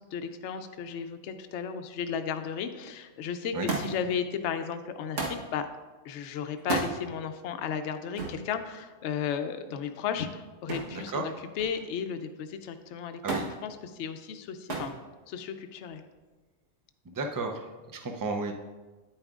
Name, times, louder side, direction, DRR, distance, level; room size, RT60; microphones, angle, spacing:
voice 1, 0.1-5.7 6.0-14.9 15.3-16.0, left 7 dB, 70° left, 8 dB, 0.9 m, -34 dB
Thump thud, 3.7-4.1 5.2-5.5 6.6-6.9 8.2-8.4 10.7-11.0 11.4-11.9 13.3-13.5 14.7-15.0 15.9-16.4 17.4-17.5, right 3 dB, 70° right, 1.6 m, -32 dB
voice 2, 10.9-11.4 13.2-13.5 17.0-18.5, right 3 dB, 30° right, 3 dB, 0.3 m, -33 dB
9.4 x 8.7 x 2.4 m, 1.2 s
omnidirectional pair, 1.3 m